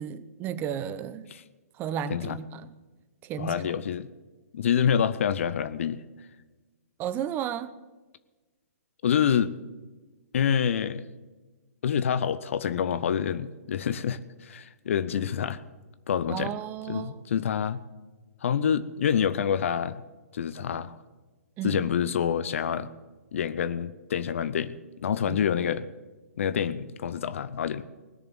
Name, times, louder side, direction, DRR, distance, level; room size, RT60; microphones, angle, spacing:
voice 1, 0.0-1.3 1.8-2.7 3.2-3.6 7.0-7.7 16.3-17.2 21.6-21.8 25.3-25.4, right 9 dB, 25° right, 15 dB, 0.8 m, -33 dB
voice 2, 3.4-4.1 4.5-6.0 9.0-9.5 10.3-11.1 11.8-15.6 16.1-16.5 16.9-17.8 18.4-20.0 20.3-20.9 21.6-22.9 23.3-25.8 26.4-27.8, left 8 dB, 55° left, 14 dB, 0.7 m, -27 dB
20.0 x 6.9 x 7.5 m, 1.2 s
figure-of-eight pair, 120°, 8 cm